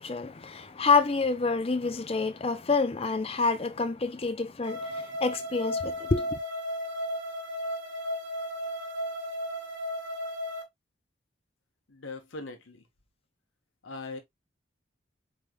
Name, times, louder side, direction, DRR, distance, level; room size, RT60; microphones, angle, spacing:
voice 1, 0.0-6.4, left 4 dB, 30° left, 0.5 m, -27 dB
sound 1, 4.6-10.6, equal, 70° right, 1.0 m, -34 dB
voice 2, 11.9-12.8 13.8-14.2, left 3 dB, 90° left, 1.2 m, -40 dB
4.9 x 3.3 x 2.4 m
head